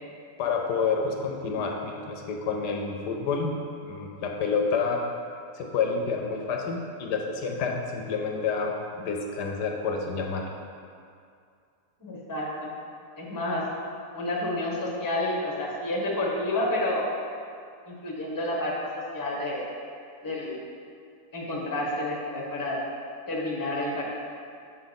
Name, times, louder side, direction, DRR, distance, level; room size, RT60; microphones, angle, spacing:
voice 1, 0.4-3.5 3.9-5.0 5.5-8.7 9.0-10.5, left 5 dB, 75° left, 1 dB, 1.2 m, -28 dB
voice 2, 12.0-12.7 13.2-13.6 14.1-17.0 17.9-18.7 19.1-19.6 20.2-20.6 21.3-22.8 23.3-24.1, left 1 dB, 15° left, -4 dB, 0.8 m, -29 dB
6.4 x 5.4 x 3.9 m, 2.3 s
omnidirectional pair, 1.8 m